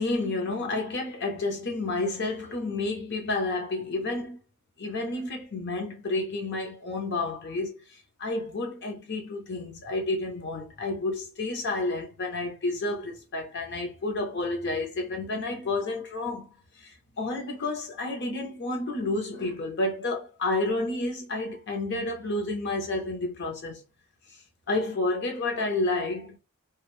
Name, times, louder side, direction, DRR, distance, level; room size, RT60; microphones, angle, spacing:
voice 1, 0.0-4.4 4.8-23.8 24.7-26.4, left 2 dB, 55° left, 0.9 m, -30 dB
2.5 x 2.4 x 3.2 m
head